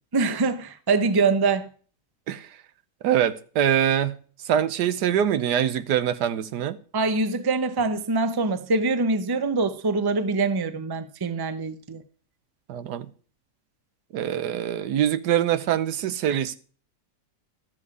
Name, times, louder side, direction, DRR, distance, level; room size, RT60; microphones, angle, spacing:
voice 1, 0.1-1.7 6.9-12.0 16.3-16.4, right 3 dB, 25° right, 0.5 m, -24 dB
voice 2, 3.0-4.1 4.4-6.8 12.7-13.1 14.1-16.5, right 10 dB, 85° right, 1.3 m, -24 dB
12.5 x 7.5 x 4.8 m
omnidirectional pair, 1.7 m